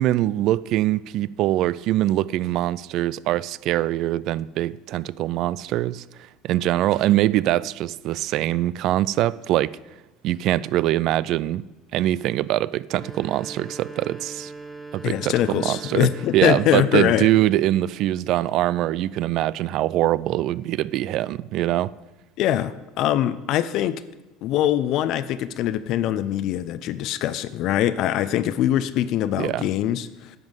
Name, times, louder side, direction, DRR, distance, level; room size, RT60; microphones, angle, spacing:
voice 1, 0.0-6.0 6.4-9.7 10.2-11.6 11.9-14.5 14.9-16.1 16.3-21.9 29.4-29.6, right 14 dB, 60° right, 0.3 m, -23 dB
sound 1, 12.8-16.9, right 3 dB, 5° right, 2.0 m, -40 dB
voice 2, 15.0-17.3 22.4-24.0 24.4-30.4, left 12 dB, 60° left, 0.5 m, -23 dB
10.5 x 5.4 x 7.9 m
supercardioid pair, 90°, 0 cm